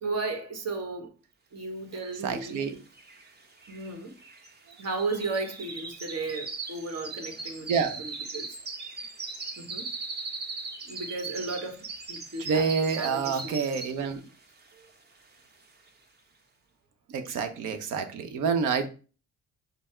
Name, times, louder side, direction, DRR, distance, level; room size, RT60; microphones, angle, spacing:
voice 1, 0.0-1.1 1.5-2.6 3.7-4.1 4.8-8.6 9.6-9.9 10.8-13.6, right 3 dB, 55° right, 1.3 m, -35 dB
voice 2, 2.2-2.8 7.7-8.0 12.4-14.2 17.1-18.9, right 5 dB, 85° right, 0.8 m, -28 dB
sound 1, 2.5-2.6 2.7-14.2 14.6-14.9 15.3-15.4, right 3 dB, 35° right, 0.9 m, -39 dB
5.5 x 2.0 x 4.3 m
cardioid pair, 90°, 30 cm